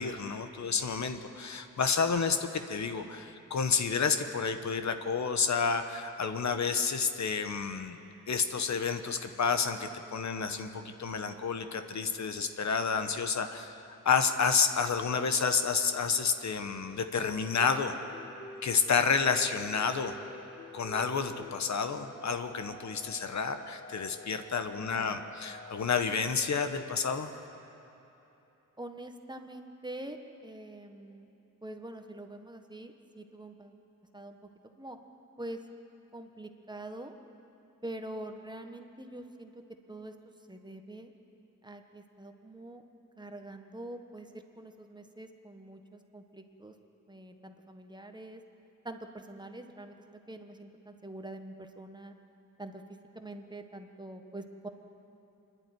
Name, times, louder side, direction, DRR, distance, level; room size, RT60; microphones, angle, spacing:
voice 1, 0.0-8.0 8.3-13.7 14.0-17.9 18.6-20.2 20.7-27.3, left 5 dB, 55° left, 8 dB, 1.1 m, -30 dB
sound 1, 17.3-27.6, left 2 dB, 25° left, 2.3 m, -49 dB
voice 2, 24.8-25.2 28.8-30.2 30.4-31.3 31.6-33.8 34.1-34.4 34.8-35.0 35.4-35.6 36.1-37.2 37.8-39.5 39.9-40.1 40.5-41.1 41.6-42.8 43.2-46.7 47.1-48.4 48.8-52.1 52.6-52.8 53.1-54.7, right 1 dB, 15° right, 5 dB, 1.3 m, -44 dB
25.5 x 11.5 x 9.3 m, 3.0 s
wide cardioid pair, 110°, 33 cm